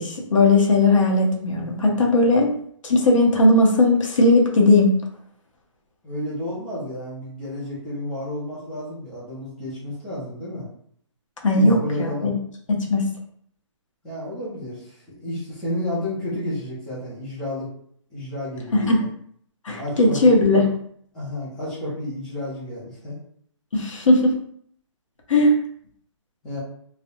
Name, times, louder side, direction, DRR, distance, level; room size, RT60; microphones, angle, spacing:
voice 1, 0.0-2.5 2.8-4.9 11.4-12.3 12.7-13.0 18.7-19.0 19.6-20.6 23.7-24.4 25.3-25.6, left 2 dB, 85° left, 0 dB, 0.7 m, -17 dB
voice 2, 6.0-10.7 11.5-12.3 14.0-17.7 18.1-19.1 19.8-20.3 21.1-23.2 26.4-26.6, left 1 dB, 5° left, -10 dB, 0.4 m, -31 dB
2.4 x 2.0 x 2.8 m, 0.64 s
hypercardioid pair, 165°, 16 cm